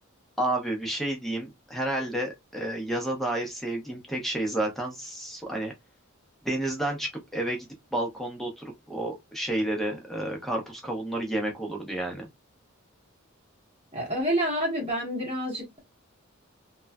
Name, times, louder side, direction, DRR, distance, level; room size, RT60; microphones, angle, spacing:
voice 1, 0.4-5.7 6.4-12.3, right 1 dB, ahead, 0.8 m, -30 dB
voice 2, 13.9-15.8, equal, 30° right, 1.1 m, -28 dB
3.0 x 2.3 x 2.2 m
head